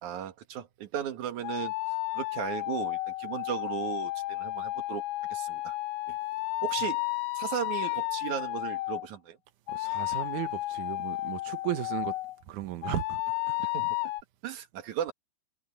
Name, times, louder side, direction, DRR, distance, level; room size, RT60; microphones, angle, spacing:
voice 1, 0.0-1.7 2.1-5.0 5.3-5.7 6.1-6.2 6.6-7.0 7.4-9.4 13.6-14.0 14.4-15.1, right 10 dB, 55° right, 2.4 m, -36 dB
sound 1, 1.4-9.1 9.7-12.4 12.8-14.2, left 20 dB, 85° left, 2.1 m, -32 dB
voice 2, 9.7-12.2 12.5-13.2 13.5-13.6, right 13 dB, 85° right, 1.7 m, -35 dB
omnidirectional pair, 5.1 m